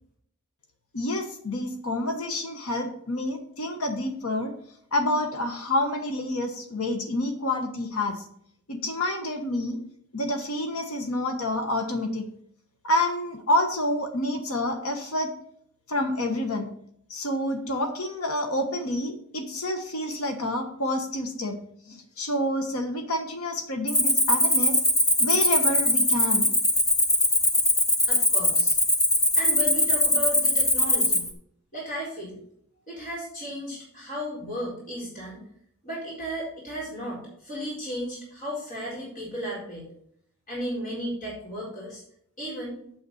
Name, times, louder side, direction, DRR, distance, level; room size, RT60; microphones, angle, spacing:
voice 1, 0.9-4.5 4.9-8.2 8.7-9.8 10.1-12.2 12.8-15.3 15.9-16.7 17.1-21.6 21.9-24.8 25.2-26.5, left 1 dB, 75° left, 6 dB, 1.3 m, -28 dB
Cricket, 23.9-31.3, left 1 dB, 15° left, 1.3 m, -22 dB
voice 2, 28.1-28.7 29.4-31.3 31.7-32.4 32.9-35.4 35.8-39.9 40.5-42.0 42.4-42.8, equal, 40° left, -6 dB, 4.3 m, -34 dB
8.2 x 7.7 x 4.2 m, 0.67 s
head